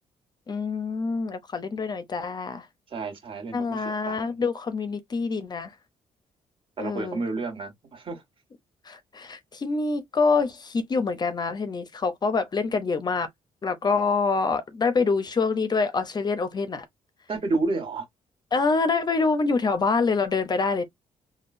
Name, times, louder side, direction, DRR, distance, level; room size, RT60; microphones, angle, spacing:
voice 1, 0.5-2.7 3.5-5.7 6.8-7.2 8.9-13.3 13.6-16.8 18.5-20.8, left 4 dB, 35° left, 0.5 m, -26 dB
voice 2, 2.9-4.3 6.8-8.2 17.3-18.0, right 3 dB, 45° right, 1.6 m, -30 dB
3.6 x 2.2 x 2.5 m
cardioid pair, 110°, 13 cm